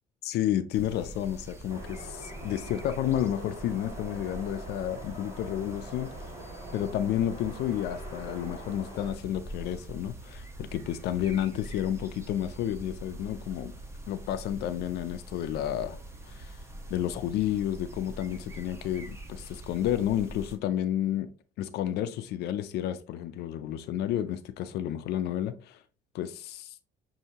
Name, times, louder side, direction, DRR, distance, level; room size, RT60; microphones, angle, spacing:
voice 1, 0.2-6.1 6.7-13.8 14.1-16.0 16.3-16.5 16.9-21.3 21.6-25.8 26.1-26.7, left 11 dB, 75° left, 0.5 m, -31 dB
sound 1, 0.7-20.6, right 1 dB, 15° right, 1.0 m, -44 dB
sound 2, 1.7-9.2, right 1 dB, 30° right, 2.1 m, -45 dB
6.5 x 2.7 x 2.8 m
cardioid pair, 110°, 17 cm